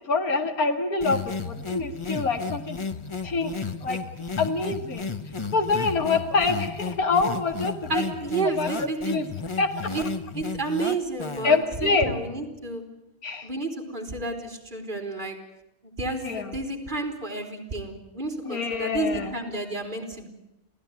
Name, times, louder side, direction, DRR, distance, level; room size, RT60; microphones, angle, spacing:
voice 1, 0.1-2.8 3.2-3.5 3.8-4.0 4.4-5.1 5.5-7.9 8.6-9.3 9.6-9.9 11.4-12.1 13.2-13.5 16.2-16.5 18.5-19.3, left 4 dB, 85° left, 6 dB, 2.4 m, -25 dB
sound 1, 1.0-11.6, left 4 dB, 25° left, 1.0 m, -33 dB
voice 2, 7.9-9.2 9.9-10.0 10.3-12.8 13.4-15.4 16.0-20.3, right 3 dB, 35° right, 5 dB, 3.9 m, -31 dB
27.5 x 16.0 x 9.4 m, 0.89 s
omnidirectional pair, 1.5 m